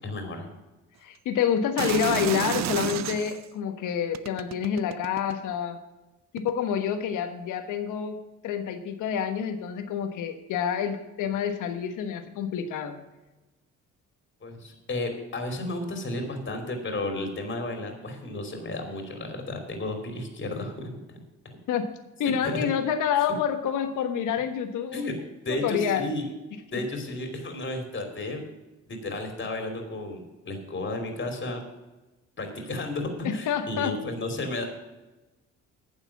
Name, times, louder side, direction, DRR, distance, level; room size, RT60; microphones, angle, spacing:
voice 1, 0.0-0.5 14.4-21.2 21.4-21.6 22.4-22.7 24.9-25.1 25.4-26.2 26.7-28.4 28.9-31.6 32.4-34.7, left 2 dB, 40° left, 4 dB, 2.9 m, -33 dB
voice 2, 1.0-5.8 6.3-8.2 8.4-13.0 21.7-21.9 22.2-25.1 25.5-26.1 33.2-34.0, left 8 dB, 85° left, 8 dB, 1.3 m, -28 dB
sound 1, 1.8-3.5 4.1-5.5 6.4-6.5, right 12 dB, 65° right, 0.5 m, -30 dB
9.6 x 7.1 x 7.2 m, 1.1 s
cardioid pair, 90°, 30 cm